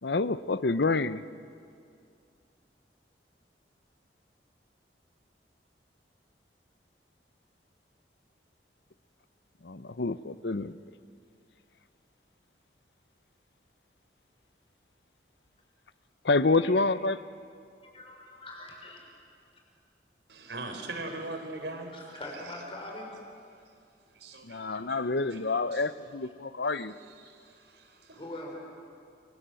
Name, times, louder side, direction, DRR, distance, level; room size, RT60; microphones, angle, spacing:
voice 1, 0.0-1.2 9.6-10.8 16.2-17.2 24.4-26.9, left 3 dB, 70° left, 15 dB, 0.8 m, -28 dB
voice 2, 17.8-19.0 21.9-23.1 28.1-28.6, left 1 dB, 30° left, 0 dB, 5.9 m, -42 dB
voice 3, 20.3-21.9 24.2-25.0 25.3-25.4 25.7-25.8 26.7-26.8 27.2-28.2, right 2 dB, 75° right, 4 dB, 4.2 m, -41 dB
29.5 x 24.5 x 7.8 m, 2.4 s
head